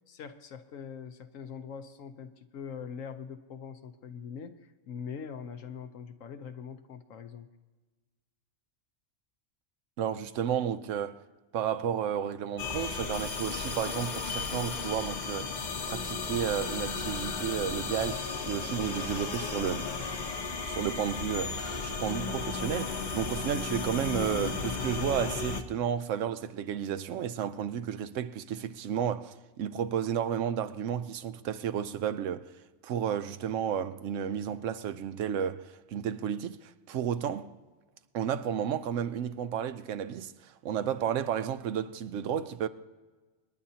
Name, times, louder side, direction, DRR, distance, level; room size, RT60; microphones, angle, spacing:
voice 1, 0.1-7.5, left 6 dB, 85° left, 1.2 m, -43 dB
voice 2, 10.0-11.2 11.5-15.5 15.8-19.9 20.7-32.5 32.8-37.5 38.1-42.7, right 9 dB, 75° right, 0.9 m, -32 dB
sound 1, 12.6-25.6, left 4 dB, 40° left, 0.9 m, -34 dB
26.0 x 10.5 x 2.8 m
omnidirectional pair, 1.3 m